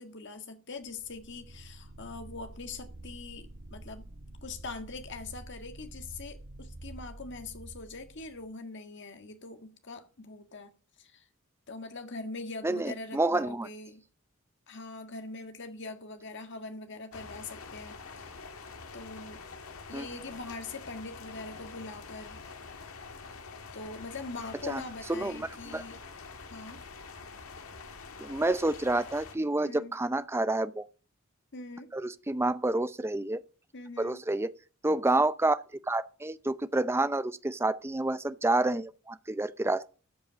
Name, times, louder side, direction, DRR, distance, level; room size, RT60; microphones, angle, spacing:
voice 1, 0.0-4.0 4.4-11.2 11.7-14.0 14.7-18.4 18.9-19.4 19.9-22.4 23.7-26.0 26.5-26.8 29.6-29.9 31.5-31.9 33.7-34.2, left 3 dB, 60° left, 1.7 m, -42 dB
sound 1, 0.8-8.5, right 1 dB, 85° right, 2.2 m, -48 dB
voice 2, 12.6-13.7 19.9-20.1 24.7-24.8 25.1-25.8 28.2-30.9 31.9-33.4 34.0-34.5 34.8-35.6 35.9-39.9, right 2 dB, 10° right, 0.5 m, -29 dB
sound 2, 17.1-29.4, left 4 dB, 90° left, 1.6 m, -46 dB
13.5 x 7.5 x 6.2 m
head